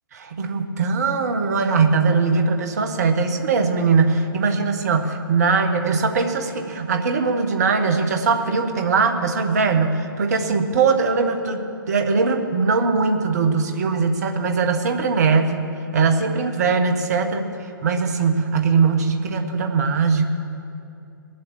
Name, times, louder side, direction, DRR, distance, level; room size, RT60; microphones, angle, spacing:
voice 1, 0.1-15.6 15.9-20.2, right 4 dB, 45° right, 7 dB, 1.3 m, -21 dB
20.0 x 7.8 x 7.2 m, 2.6 s
figure-of-eight pair, 125°, 12 cm